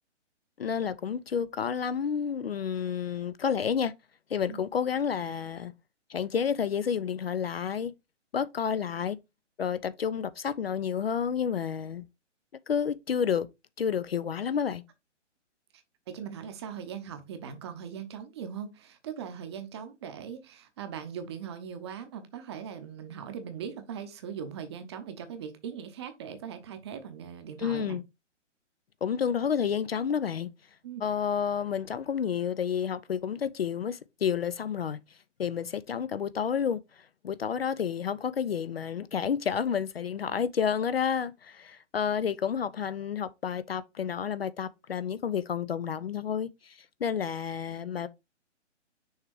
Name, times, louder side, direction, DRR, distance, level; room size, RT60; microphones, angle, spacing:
voice 1, 0.6-3.9 4.3-5.7 6.1-7.9 8.3-9.2 9.6-12.0 12.7-13.5 13.8-14.8 27.6-28.0 29.0-30.5 31.0-35.0 35.4-48.1, left 7 dB, 55° left, 0.5 m, -30 dB
voice 2, 16.1-28.0 30.8-31.0, right 7 dB, 20° right, 0.7 m, -40 dB
6.4 x 3.3 x 4.6 m
figure-of-eight pair, 135°, 37 cm